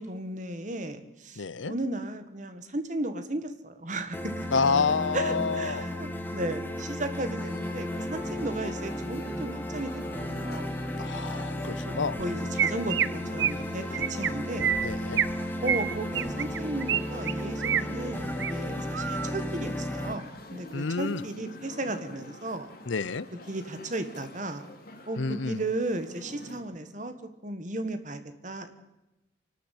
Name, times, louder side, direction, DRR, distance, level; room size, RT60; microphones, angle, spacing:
voice 1, 0.0-4.6 5.1-10.7 11.8-14.7 15.6-22.7 23.5-24.6 25.1-27.1 27.4-28.7, right 2 dB, 40° right, 9 dB, 1.7 m, -35 dB
voice 2, 1.4-1.7 4.5-6.0 8.3-8.4 11.0-12.2 14.8-15.2 20.7-21.2 22.9-23.3 25.2-25.6, left 4 dB, 80° left, 18 dB, 0.7 m, -29 dB
sound 1, 4.1-20.1, left 1 dB, 10° left, 1.6 m, -34 dB
sound 2, 7.4-26.6, left 2 dB, 50° left, 2.8 m, -46 dB
Chirp tweet, 12.2-12.3 12.6-13.1 13.4-13.6 13.9-14.3 14.6-15.3 15.7-17.0 17.3-17.8 18.2-18.5 18.9-19.3, right 9 dB, 65° right, 0.6 m, -27 dB
25.5 x 12.5 x 8.3 m, 0.99 s
head